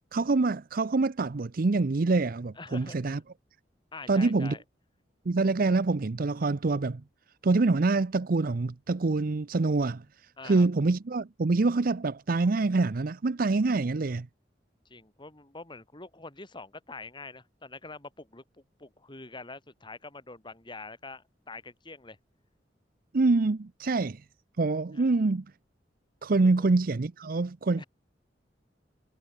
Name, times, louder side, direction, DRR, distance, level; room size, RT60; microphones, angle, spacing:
voice 1, 0.1-3.2 4.1-4.5 5.3-7.0 7.4-10.0 10.4-14.3 23.1-24.2 24.6-25.5 26.2-27.8, right 3 dB, 55° right, 0.6 m, -25 dB
voice 2, 2.5-3.2 3.9-4.6 10.4-10.7 14.8-22.2 24.9-25.1 26.4-26.7 27.8-27.9, left 3 dB, 25° left, 3.3 m, -45 dB
head